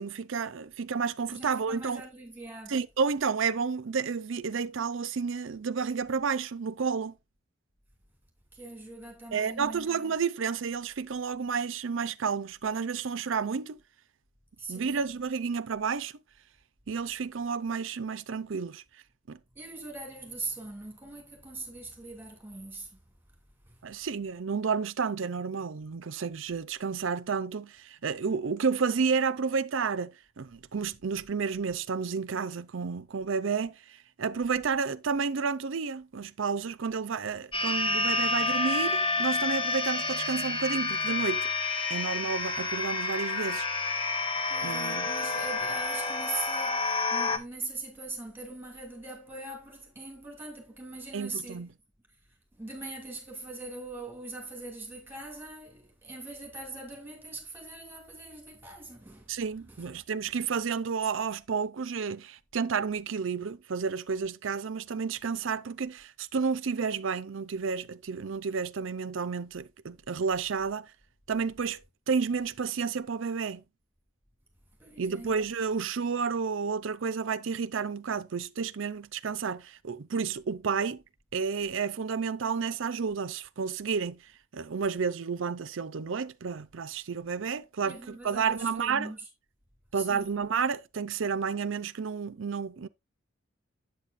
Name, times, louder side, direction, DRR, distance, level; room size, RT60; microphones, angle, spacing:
voice 1, 0.0-2.0 2.7-7.2 9.3-13.8 14.7-16.1 16.9-18.8 19.3-19.4 23.8-41.5 41.9-43.7 44.6-45.1 51.1-51.7 59.3-70.9 71.3-71.8 72.1-73.6 75.0-81.0 81.3-84.2 84.5-89.1 89.9-92.9, right 5 dB, 75° right, 0.5 m, -31 dB
voice 2, 1.3-2.7 8.5-9.9 14.6-14.9 19.5-23.0 23.7-23.8 44.5-51.7 52.6-59.3 59.8-59.9 74.8-75.4 87.8-89.2 89.9-90.4, right 2 dB, 10° right, 2.6 m, -41 dB
sound 1, 37.5-47.4, left 3 dB, 25° left, 0.8 m, -29 dB
8.3 x 7.8 x 2.5 m
head